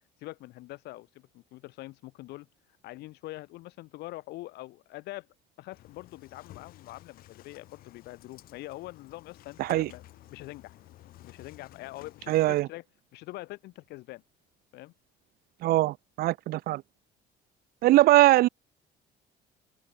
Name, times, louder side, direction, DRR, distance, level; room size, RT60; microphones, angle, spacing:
voice 1, 0.2-2.5 2.8-5.3 5.6-10.0 10.3-10.8 11.2-12.8 13.1-14.2 14.7-14.9, left 18 dB, 80° left, 7.2 m, -44 dB
Engine starting, 5.7-12.6, left 15 dB, 60° left, 3.2 m, -53 dB
voice 2, 9.6-9.9 12.3-12.7 15.6-16.8 17.8-18.5, right 16 dB, 65° right, 1.1 m, -21 dB
open air
cardioid pair, 160°, 17 cm